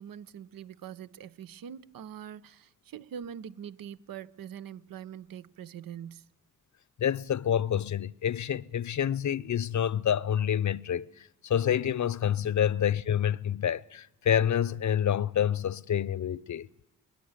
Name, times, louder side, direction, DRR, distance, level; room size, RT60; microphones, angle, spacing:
voice 1, 0.0-6.3, right 9 dB, 75° right, 0.9 m, -43 dB
voice 2, 7.0-16.7, left 9 dB, 55° left, 0.8 m, -28 dB
23.5 x 19.5 x 9.7 m
supercardioid pair, 45°, 34 cm